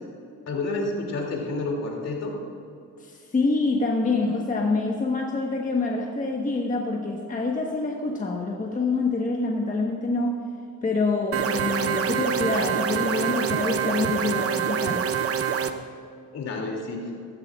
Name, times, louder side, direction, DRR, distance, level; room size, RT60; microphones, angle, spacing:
voice 1, 0.5-2.3 16.3-17.1, left 2 dB, 60° left, 0 dB, 2.7 m, -29 dB
voice 2, 3.0-10.3 10.8-15.0, left 3 dB, 25° left, 0 dB, 1.3 m, -26 dB
sound 1, 11.3-15.7, right 8 dB, 50° right, 0.7 m, -25 dB
14.5 x 14.5 x 2.4 m, 2.6 s
cardioid pair, 90°, 30 cm